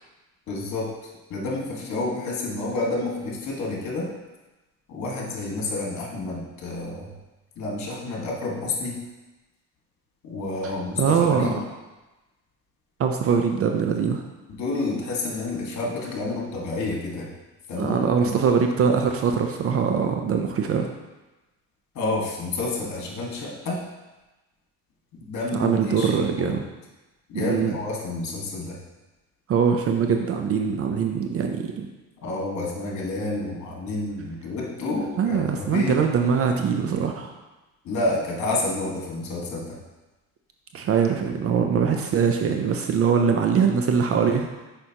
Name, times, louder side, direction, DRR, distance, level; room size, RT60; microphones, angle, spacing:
voice 1, 0.5-4.1 4.9-7.1 7.6-9.0 10.2-11.6 14.5-17.3 17.7-18.3 21.9-23.8 25.2-26.6 27.3-28.8 32.2-36.0 37.8-39.8, left 2 dB, 55° left, -2 dB, 1.7 m, -29 dB
voice 2, 11.0-11.5 13.0-14.2 17.8-20.9 25.5-26.6 27.3-27.8 29.5-31.9 35.2-37.3 40.7-44.5, right 6 dB, 45° right, 4 dB, 0.5 m, -22 dB
6.4 x 5.1 x 2.9 m, 1.1 s
cardioid pair, 105°, 34 cm